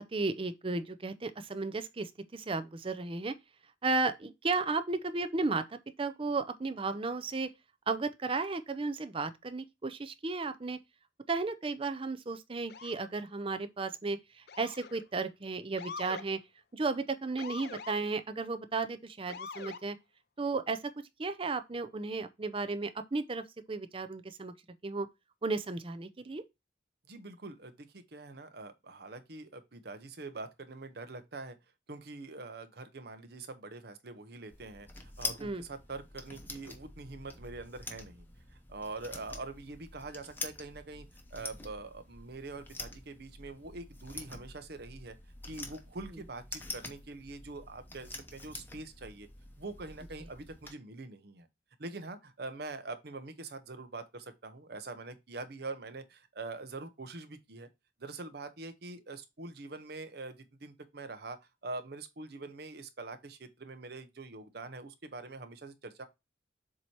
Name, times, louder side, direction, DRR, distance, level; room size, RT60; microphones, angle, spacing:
voice 1, 0.0-3.3 3.8-7.5 7.9-10.8 11.3-14.2 14.6-16.4 16.7-20.0 20.4-20.9 21.2-24.5 24.8-25.1 25.4-26.4 35.4-35.6, right 3 dB, 30° right, 0.5 m, -34 dB
Motor vehicle (road) / Siren, 12.7-13.1 14.5-15.0 15.8-16.3 17.4-18.0 19.3-19.8, left 5 dB, 60° left, 0.5 m, -43 dB
voice 2, 27.1-31.6 31.9-38.2 38.5-41.1 41.3-45.2 45.5-49.3 49.6-51.5 51.8-57.7 58.0-66.1, right 3 dB, 60° right, 0.8 m, -44 dB
sound 1, 34.5-50.7, left 2 dB, 10° left, 0.8 m, -46 dB
7.4 x 2.9 x 4.5 m
head